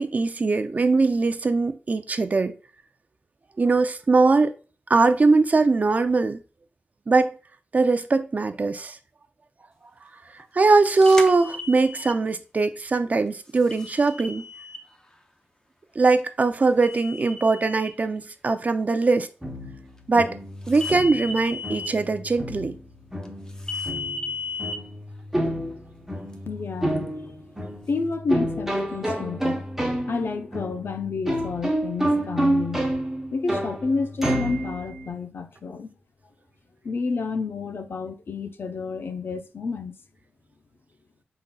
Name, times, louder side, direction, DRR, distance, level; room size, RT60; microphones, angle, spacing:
voice 1, 0.0-2.5 3.6-4.5 4.9-6.4 7.1-7.3 7.7-9.0 10.5-14.4 16.0-19.3 20.1-20.3 20.7-22.7, right 3 dB, 40° right, 0.4 m, -21 dB
sound 1, 11.0-12.1 13.7-14.8 16.8-17.9 20.7-21.9 23.7-24.7, left 4 dB, 15° left, 0.6 m, -34 dB
sound 2, 19.4-35.1, right 1 dB, 5° right, 0.9 m, -29 dB
voice 2, 26.5-27.1 27.9-29.7 30.1-32.9 33.3-35.9 36.8-39.9, left 4 dB, 65° left, 0.5 m, -30 dB
5.3 x 3.8 x 2.3 m
wide cardioid pair, 115°, 4 cm